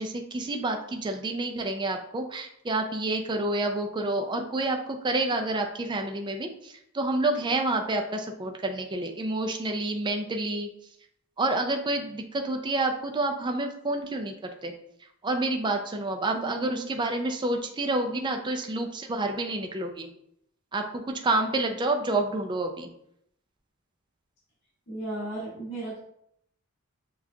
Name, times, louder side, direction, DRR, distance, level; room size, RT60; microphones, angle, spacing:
voice 1, 0.0-10.7 11.4-14.3 14.6-14.7 15.2-20.1 20.7-22.9, right 2 dB, 20° right, 4 dB, 0.4 m, -29 dB
voice 2, 16.3-16.9 24.9-26.0, right 2 dB, 55° left, -10 dB, 1.6 m, -35 dB
6.9 x 2.4 x 2.7 m, 0.73 s
head